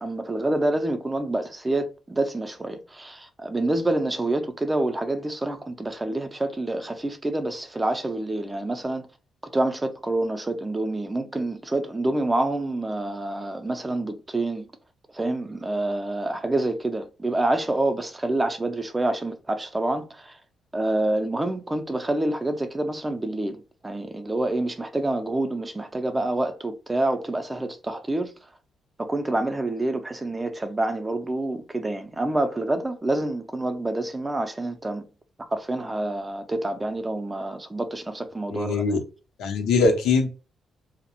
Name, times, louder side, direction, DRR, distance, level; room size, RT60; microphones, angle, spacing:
voice 1, 0.0-9.1 9.5-14.7 15.1-20.4 20.7-28.3 29.0-35.0 35.5-38.8, right 2 dB, 20° right, 0.5 m, -27 dB
voice 2, 38.5-39.0 39.4-40.3, left 4 dB, 85° left, 0.6 m, -22 dB
2.3 x 2.1 x 2.9 m
cardioid pair, 70°, 0 cm